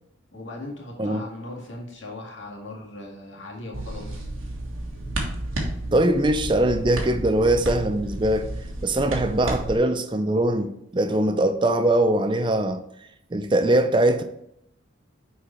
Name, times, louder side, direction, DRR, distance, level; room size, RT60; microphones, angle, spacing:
voice 1, 0.3-4.2, left 2 dB, 70° left, 2.0 m, -38 dB
sound 1, 3.7-9.8, right 1 dB, 90° right, 1.5 m, -32 dB
voice 2, 5.9-8.5 8.8-12.8 13.3-14.2, right 1 dB, 25° right, 0.5 m, -21 dB
6.1 x 4.8 x 4.3 m
head